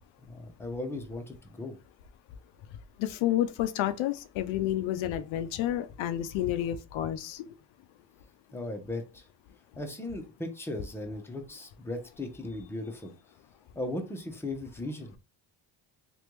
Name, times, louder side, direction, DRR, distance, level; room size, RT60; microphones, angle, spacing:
voice 1, 0.2-1.8 8.5-9.2 9.8-13.1 13.8-15.1, left 1 dB, 5° left, 0.8 m, -37 dB
voice 2, 3.0-7.4, left 12 dB, 85° left, 0.5 m, -30 dB
3.3 x 2.5 x 3.0 m
cardioid pair, 75°, 46 cm